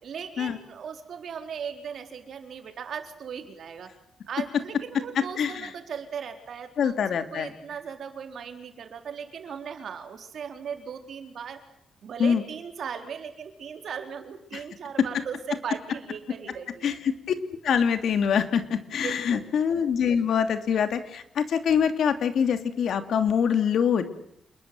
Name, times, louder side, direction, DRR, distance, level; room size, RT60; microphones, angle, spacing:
voice 1, 0.0-3.9 4.3-7.1 7.3-11.6 12.0-17.0 18.9-19.5, right 7 dB, 55° right, 6 dB, 4.2 m, -38 dB
voice 2, 5.2-5.5 6.8-7.5 12.2-12.4 14.5-14.6 16.8-17.1 17.6-24.0, left 7 dB, 60° left, 9 dB, 2.8 m, -24 dB
28.0 x 22.0 x 7.9 m, 0.76 s
wide cardioid pair, 155°, 0 cm